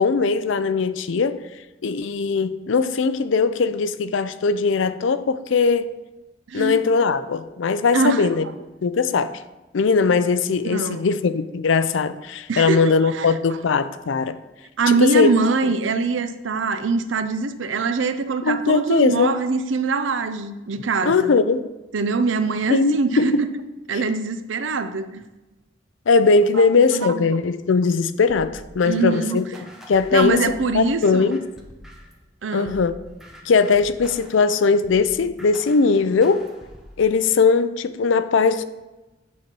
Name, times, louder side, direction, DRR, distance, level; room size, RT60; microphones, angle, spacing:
voice 1, 0.0-1.4 1.8-5.9 6.5-8.4 8.8-9.4 9.7-14.4 14.9-15.3 18.4-19.4 21.0-21.7 22.7-23.4 26.1-29.4 29.9-31.4 32.5-33.0 33.5-36.5 37.0-38.6, left 4 dB, 85° left, 0.5 m, -20 dB
voice 2, 6.5-6.8 7.9-8.3 10.6-11.0 12.5-13.3 14.8-21.3 21.9-23.5 23.9-25.2 26.5-26.7 26.9-27.3 28.8-29.4 30.1-31.4 32.4-32.8, right 4 dB, 90° right, 0.6 m, -23 dB
sound 1, 28.3-32.2 32.7-37.0, equal, 5° right, 1.0 m, -45 dB
9.4 x 4.3 x 5.3 m
head